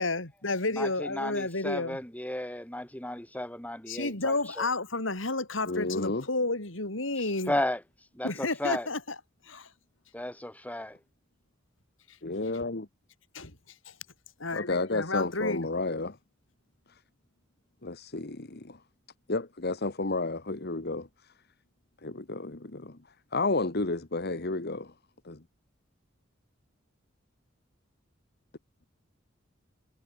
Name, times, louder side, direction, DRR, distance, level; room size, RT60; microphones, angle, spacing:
voice 1, 0.0-2.0 3.9-7.6 8.2-9.2 9.4-9.7 12.1-12.2 13.3-14.0 14.4-15.7, left 2 dB, 80° left, 4.6 m, -31 dB
voice 2, 0.8-4.3 7.5-7.8 8.1-8.9 10.1-11.0, left 1 dB, 10° left, 3.2 m, -34 dB
voice 3, 5.6-6.2 12.2-12.9 14.5-16.2 16.9-17.0 17.8-18.8 19.3-21.3 22.0-24.9 25.2-25.4, left 3 dB, 55° left, 1.5 m, -32 dB
head